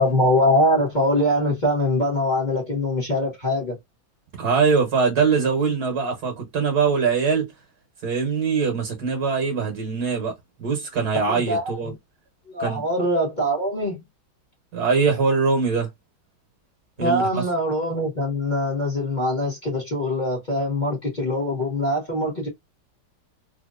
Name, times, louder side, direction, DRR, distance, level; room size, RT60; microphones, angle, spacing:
voice 1, 0.0-3.8 11.2-11.7 12.5-14.0 17.0-22.5, left 1 dB, 25° left, 1.5 m, -23 dB
voice 2, 4.4-7.5 8.0-11.9 12.6-12.8 14.7-15.9 17.0-17.4, right 5 dB, 55° right, 1.5 m, -22 dB
4.0 x 2.8 x 2.5 m
omnidirectional pair, 2.2 m